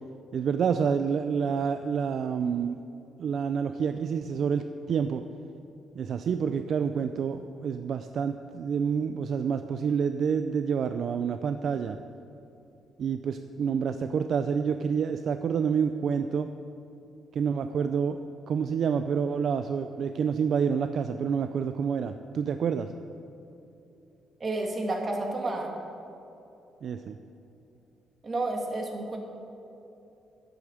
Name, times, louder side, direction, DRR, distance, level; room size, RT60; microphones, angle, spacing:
voice 1, 0.3-2.8 3.2-5.2 6.0-12.0 13.0-16.5 17.3-18.2 18.5-22.9 26.8-27.2, right 6 dB, 60° right, 9 dB, 0.4 m, -28 dB
voice 2, 24.4-25.7 28.2-29.2, right 2 dB, 35° right, 2 dB, 2.0 m, -30 dB
10.0 x 8.2 x 7.2 m, 2.9 s
cardioid pair, 90°, 0 cm